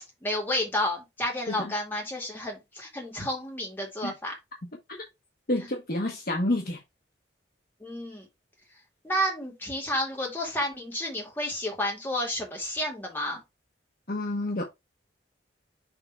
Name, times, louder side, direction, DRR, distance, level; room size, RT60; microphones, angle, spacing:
voice 1, 0.2-4.3 5.6-5.7 7.8-8.3 9.0-13.4, left 1 dB, 10° left, 2.2 m, -31 dB
voice 2, 5.5-6.8 14.1-14.6, left 1 dB, 50° left, 1.2 m, -28 dB
6.5 x 3.4 x 4.6 m
head